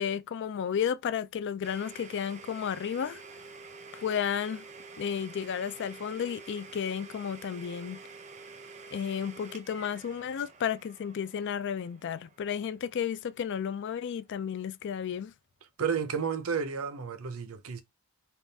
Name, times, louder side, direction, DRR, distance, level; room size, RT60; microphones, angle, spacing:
voice 1, 0.0-3.2 3.9-4.6 5.0-8.0 8.9-15.3, left 8 dB, 55° left, 0.3 m, -33 dB
Domestic sounds home sounds, 1.6-13.3, right 4 dB, 30° right, 0.6 m, -49 dB
voice 2, 15.8-17.8, right 6 dB, 70° right, 0.6 m, -31 dB
3.6 x 2.4 x 4.0 m
head